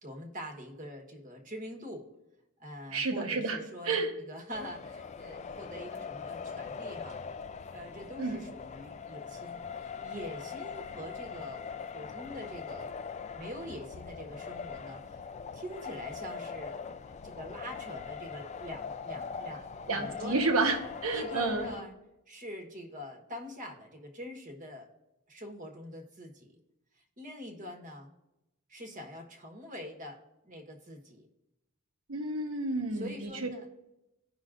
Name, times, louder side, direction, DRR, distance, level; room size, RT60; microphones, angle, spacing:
voice 1, 0.0-2.1 2.6-4.0 4.3-7.2 7.7-11.6 11.9-12.9 13.3-15.2 15.5-16.8 17.1-20.4 21.1-21.9 22.3-24.9 25.3-26.5 27.2-28.1 28.7-30.2 30.4-31.3 32.9-33.8, equal, 35° right, 1 dB, 1.2 m, -44 dB
voice 2, 2.9-3.6 3.8-4.1 8.2-8.4 19.9-21.7 32.1-33.5, right 3 dB, 70° right, 4 dB, 1.1 m, -30 dB
sound 1, 4.5-21.8, left 6 dB, 30° left, 0.3 m, -42 dB
16.5 x 5.6 x 2.5 m, 0.94 s
head